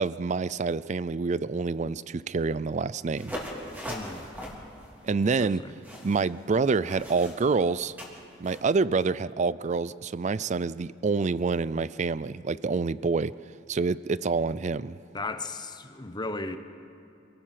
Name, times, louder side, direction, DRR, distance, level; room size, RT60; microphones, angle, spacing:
voice 1, 0.0-3.3 5.0-5.6 6.0-7.9 8.4-13.3 13.7-15.0, right 4 dB, 40° right, 18 dB, 0.4 m, -27 dB
sound 1, 3.2-8.7, equal, 10° right, 3.5 m, -41 dB
voice 2, 3.9-4.3 5.2-5.8 15.1-16.6, left 2 dB, 25° left, 8 dB, 1.0 m, -36 dB
27.5 x 18.0 x 5.9 m, 2.5 s
head